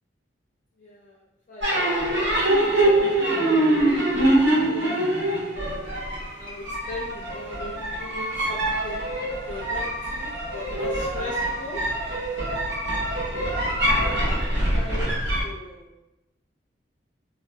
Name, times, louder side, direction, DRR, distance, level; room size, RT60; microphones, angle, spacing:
voice 1, 0.8-3.1 4.7-5.2 6.4-9.1 9.5-9.8 10.1-11.8 14.0-14.4 14.7-15.2 15.4-15.9, left 2 dB, 45° left, -7 dB, 0.4 m, -39 dB
sound 1, 1.6-15.4, right 1 dB, 75° right, 0.8 m, -24 dB
2.4 x 2.1 x 2.6 m, 0.98 s
head